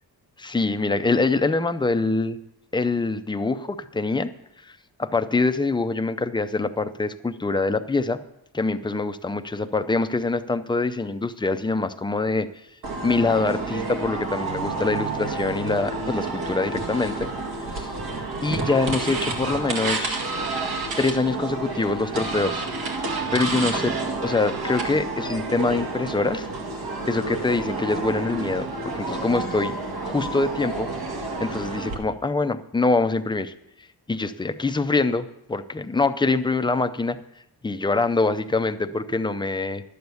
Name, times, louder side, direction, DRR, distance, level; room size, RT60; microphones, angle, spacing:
voice 1, 0.4-2.4 2.7-4.3 5.0-8.2 8.5-12.5 13.0-17.3 17.7-17.9 18.4-20.2 21.0-22.6 23.3-23.9 24.2-26.5 27.1-29.7 30.0-30.9 31.4-33.5 34.1-37.2 37.6-39.8, left 3 dB, 10° left, 10 dB, 0.5 m, -24 dB
sound 1, 12.8-31.9, right 3 dB, 70° right, 2.0 m, -30 dB
11.5 x 8.0 x 6.9 m, 0.84 s
wide cardioid pair, 135°, 38 cm